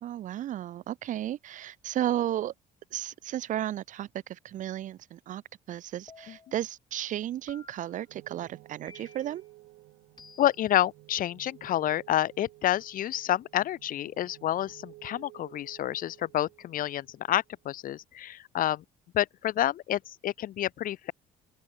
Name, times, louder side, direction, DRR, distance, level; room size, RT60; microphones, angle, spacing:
voice 1, 0.0-2.5 2.9-5.4 5.7-9.4, right 12 dB, 50° right, 0.4 m, -34 dB
sound 1, 6.1-6.7 7.5-8.1 8.9-9.4 10.2-10.7, left 5 dB, 25° left, 1.9 m, -53 dB
sound 2, 8.1-17.8, right 19 dB, 85° right, 1.8 m, -54 dB
voice 2, 10.4-18.8 19.1-21.1, left 12 dB, 55° left, 0.7 m, -29 dB
open air
cardioid pair, 110°, 17 cm